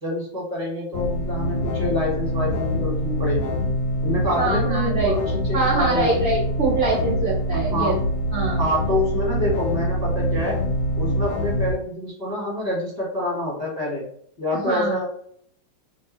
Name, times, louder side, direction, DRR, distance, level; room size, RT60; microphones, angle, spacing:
voice 1, 0.0-3.5 4.0-6.1 7.7-8.0 8.6-10.6 10.9-14.1 14.4-15.1, left 1 dB, 25° right, -4 dB, 1.5 m, -27 dB
sound 1, 0.9-11.7, equal, 80° left, 1.3 m, -24 dB
voice 2, 4.3-5.2 5.5-8.0 8.3-8.6 14.5-15.0, right 3 dB, 45° right, -6 dB, 0.9 m, -24 dB
3.0 x 2.7 x 3.9 m, 0.64 s
omnidirectional pair, 2.0 m